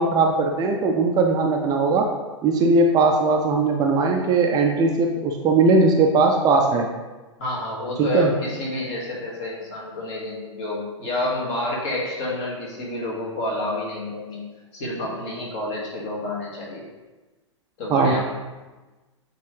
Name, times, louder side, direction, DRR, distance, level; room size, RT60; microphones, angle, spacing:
voice 1, 0.0-2.1 2.4-6.9 8.0-8.3 17.9-18.2, right 3 dB, 25° right, 2 dB, 0.5 m, -19 dB
voice 2, 7.4-14.5 14.7-16.8 17.8-18.2, left 2 dB, 40° left, -3 dB, 1.8 m, -29 dB
8.1 x 3.8 x 3.2 m, 1.2 s
figure-of-eight pair, 105°, 16 cm